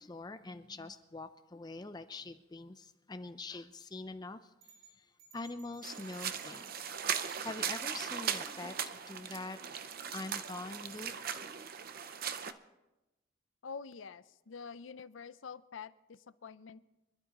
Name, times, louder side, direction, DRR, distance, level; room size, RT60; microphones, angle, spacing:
voice 1, 0.0-5.1 5.3-9.6 10.1-11.5, left 3 dB, 20° left, 9 dB, 0.5 m, -45 dB
sound 1, 4.6-8.3, right 7 dB, 75° right, 4.4 m, -60 dB
sound 2, 5.8-12.5, right 8 dB, 50° right, 0.7 m, -38 dB
voice 2, 13.6-16.8, left 5 dB, 75° left, 15 dB, 0.5 m, -47 dB
25.0 x 12.0 x 3.0 m, 0.98 s
head